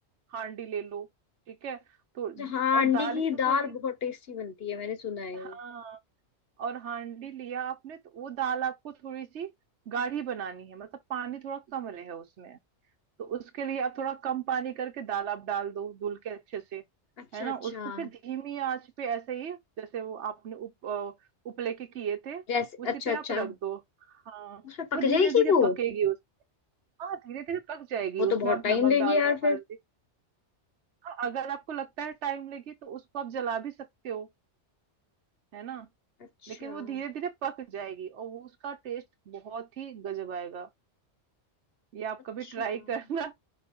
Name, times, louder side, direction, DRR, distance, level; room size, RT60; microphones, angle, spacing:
voice 1, 0.3-1.1 1.5-1.8 2.1-3.7 5.3-6.0 6.6-9.5 9.9-12.6 13.2-16.8 17.3-21.1 21.4-22.4 22.8-23.8 24.3-24.6 24.9-26.2 27.0-29.6 31.0-34.3 35.5-35.9 36.5-40.7 41.9-43.3, right 8 dB, 75° right, 1.1 m, -35 dB
voice 2, 2.4-5.5 17.2-18.1 22.5-23.5 24.6-25.8 28.2-29.6 36.4-37.0, left 6 dB, 55° left, 1.4 m, -27 dB
5.9 x 5.4 x 3.6 m
omnidirectional pair, 1.2 m